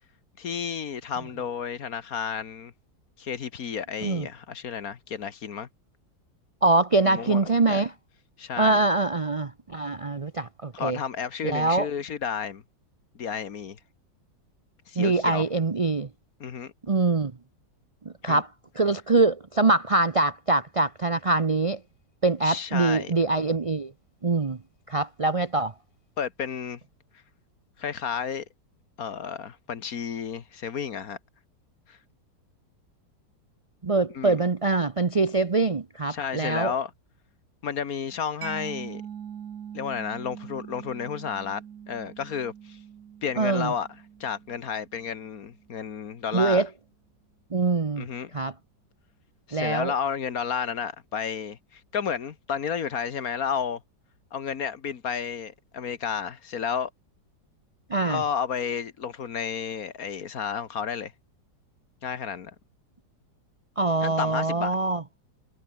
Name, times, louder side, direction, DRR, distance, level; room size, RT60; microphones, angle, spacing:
voice 1, 0.4-2.7 3.2-5.7 7.0-7.8 8.4-8.8 10.7-12.6 13.1-13.8 14.9-15.4 16.4-16.7 18.2-18.4 22.4-23.1 26.2-26.8 27.8-28.4 29.0-31.2 31.9-32.0 34.1-34.4 36.1-36.9 37.6-39.0 39.7-42.8 43.2-43.9 44.2-46.6 48.0-48.3 49.5-53.8 54.3-56.9 58.1-61.1 62.0-62.5 64.0-64.8, left 7 dB, 55° left, 1.7 m, -32 dB
voice 2, 6.6-7.9 8.6-11.0 11.4-11.9 15.0-16.1 16.9-17.3 18.0-18.5 18.8-21.8 22.2-23.9 24.2-24.6 24.9-25.7 33.8-36.7 43.4-43.7 46.3-46.7 47.5-48.1 48.3-48.5 49.5-49.9 57.9-58.2 63.8-65.0, right 3 dB, 45° right, 0.4 m, -24 dB
Mallet percussion, 38.4-45.8, right 9 dB, 60° right, 1.6 m, -43 dB
omnidirectional pair, 1.9 m